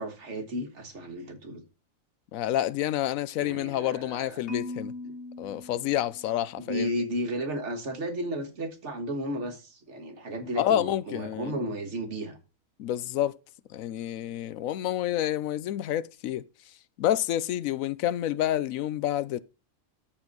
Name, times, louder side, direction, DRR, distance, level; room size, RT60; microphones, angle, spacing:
voice 1, 0.0-1.6 3.4-4.4 5.0-5.1 6.6-12.4, right 1 dB, 60° right, 1.7 m, -34 dB
voice 2, 2.3-4.9 5.4-6.9 10.6-11.7 12.8-13.3 13.7-16.4 17.0-19.4, left 12 dB, 90° left, 1.0 m, -28 dB
Marimba xylophone, 4.5-6.7, left 2 dB, 55° left, 1.8 m, -39 dB
13.0 x 4.4 x 3.9 m
omnidirectional pair, 1.4 m